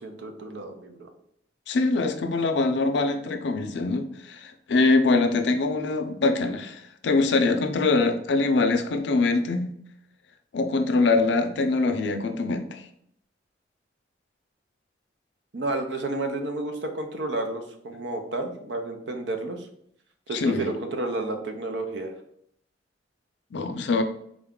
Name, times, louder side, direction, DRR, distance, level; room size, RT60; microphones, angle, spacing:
voice 1, 0.0-1.1 15.5-19.7 20.3-22.1, right 2 dB, 75° right, 5 dB, 0.6 m, -31 dB
voice 2, 1.7-9.7 10.5-12.8 20.3-20.7 23.5-24.0, left 3 dB, 75° left, 7 dB, 0.4 m, -23 dB
3.7 x 2.3 x 3.6 m, 0.71 s
head